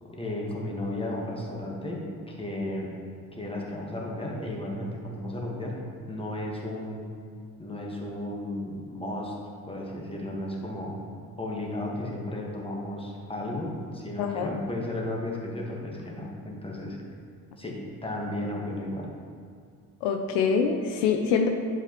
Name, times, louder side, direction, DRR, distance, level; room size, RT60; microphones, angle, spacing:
voice 1, 0.0-2.9 3.4-5.8 6.1-7.1 7.6-9.3 9.7-11.0 11.4-17.0 17.6-19.1, left 1 dB, 15° left, -2 dB, 1.4 m, -34 dB
voice 2, 14.2-14.5 20.0-21.5, left 6 dB, 75° left, 4 dB, 0.6 m, -25 dB
7.9 x 4.8 x 3.0 m, 2.2 s
hypercardioid pair, 50°, 43 cm